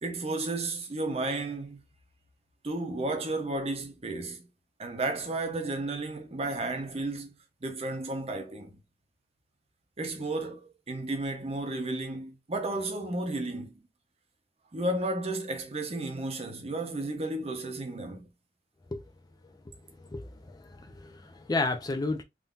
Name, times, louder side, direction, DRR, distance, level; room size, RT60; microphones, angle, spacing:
voice 1, 0.0-1.8 2.6-4.5 4.8-7.3 7.6-8.8 10.0-13.7 14.7-18.3, right 2 dB, 35° right, 0.8 m, -33 dB
voice 2, 20.1-22.2, left 3 dB, 20° left, 0.4 m, -32 dB
3.7 x 2.6 x 2.4 m
head